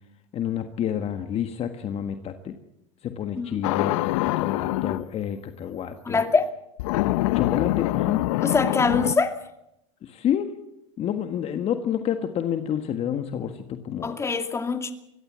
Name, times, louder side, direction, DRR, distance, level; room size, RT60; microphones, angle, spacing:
voice 1, 0.3-2.5 3.0-6.2 7.3-8.2 10.0-10.5 11.0-14.1, left 9 dB, 40° left, 7 dB, 1.6 m, -29 dB
sound 1, 3.6-5.1 6.8-9.1, left 18 dB, 70° left, 0.7 m, -24 dB
voice 2, 6.1-6.5 8.4-9.4 14.0-14.9, left 4 dB, 15° left, 7 dB, 2.4 m, -23 dB
23.5 x 16.5 x 7.6 m, 0.85 s
supercardioid pair, 110°, 16 cm